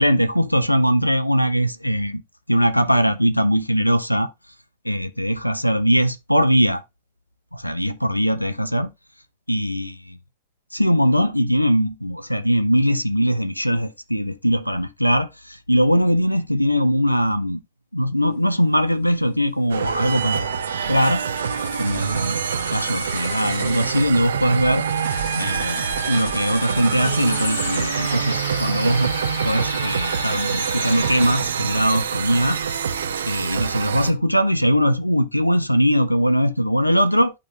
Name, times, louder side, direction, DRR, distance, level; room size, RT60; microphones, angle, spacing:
voice 1, 0.0-2.2 2.5-4.3 4.8-6.8 7.5-8.9 9.5-10.0 10.7-17.6 17.9-20.6 20.9-21.2 21.7-22.4 22.7-24.9 25.3-29.1 29.4-32.6 33.3-37.3, equal, 90° left, 0.5 m, -20 dB
sound 1, 18.4-31.4, left 3 dB, 65° left, 1.4 m, -35 dB
sound 2, 19.7-34.1, right 7 dB, 65° right, 0.6 m, -26 dB
11.0 x 3.9 x 2.4 m
figure-of-eight pair, 90°, 0 cm